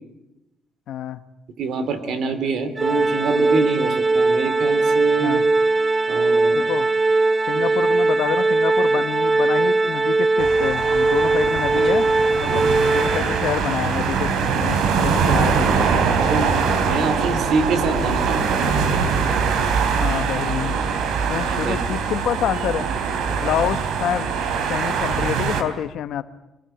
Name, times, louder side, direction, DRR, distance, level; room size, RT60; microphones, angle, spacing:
voice 1, 0.9-1.2 5.2-5.4 6.5-6.9 7.5-12.1 12.4-15.7 16.3-16.5 19.8-20.8 21.3-22.9 23.3-24.3 24.7-26.2, left 10 dB, 65° left, 11 dB, 1.1 m, -27 dB
voice 2, 1.6-5.4 6.1-6.6 7.5-7.6 11.9-12.0 12.5-12.7 14.9-15.2 16.3-16.5 16.8-18.6 21.4-21.8, right 4 dB, 60° right, 10 dB, 3.2 m, -25 dB
Organ, 2.8-13.6, right 3 dB, 15° right, 0.9 m, -20 dB
sound 1, 10.4-25.6, right 5 dB, 85° right, 3.6 m, -22 dB
25.5 x 20.0 x 9.0 m, 0.96 s
cardioid pair, 170°, 0 cm